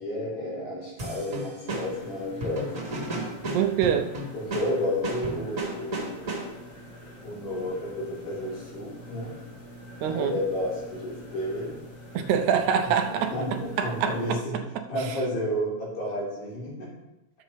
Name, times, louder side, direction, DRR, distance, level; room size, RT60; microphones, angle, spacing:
voice 1, 0.0-2.7 4.3-6.4 7.2-9.3 10.1-11.8 13.1-14.5 14.9-16.9, left 1 dB, 85° left, -7 dB, 5.3 m, -31 dB
sound 1, 1.0-6.8, right 1 dB, 30° right, 1.8 m, -34 dB
sound 2, 1.7-14.3, equal, 65° left, 4.2 m, -46 dB
voice 2, 3.5-4.1 10.0-10.4 12.1-15.2, right 8 dB, 80° right, 6 dB, 2.0 m, -26 dB
11.5 x 7.7 x 3.3 m, 0.94 s
omnidirectional pair, 3.5 m